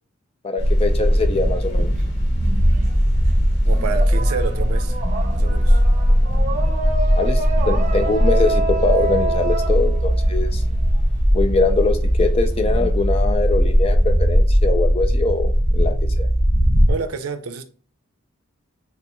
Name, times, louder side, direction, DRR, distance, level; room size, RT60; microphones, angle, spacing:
voice 1, 0.4-2.0 7.2-10.6 11.3-16.3, left 3 dB, 25° left, 0.4 m, -23 dB
sound 1, 0.6-16.9, equal, 50° left, 0.9 m, -18 dB
sound 2, 1.7-2.9 3.2-11.0, right 3 dB, 35° right, 0.5 m, -29 dB
voice 2, 3.6-5.0 5.3-5.8 16.9-17.6, right 5 dB, 90° right, 0.5 m, -29 dB
3.7 x 2.9 x 3.6 m
head